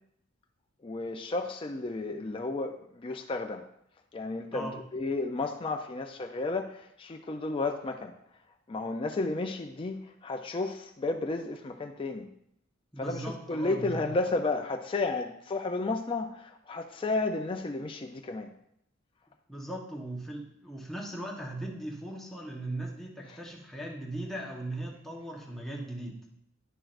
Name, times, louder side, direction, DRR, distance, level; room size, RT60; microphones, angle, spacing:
voice 1, 0.8-3.7 4.1-8.1 8.7-12.3 13.0-18.5 23.3-23.4, left 3 dB, 25° left, 3 dB, 0.4 m, -32 dB
voice 2, 12.9-14.1 19.5-26.2, right 1 dB, ahead, -2 dB, 1.1 m, -38 dB
10.0 x 6.0 x 2.5 m, 0.75 s
head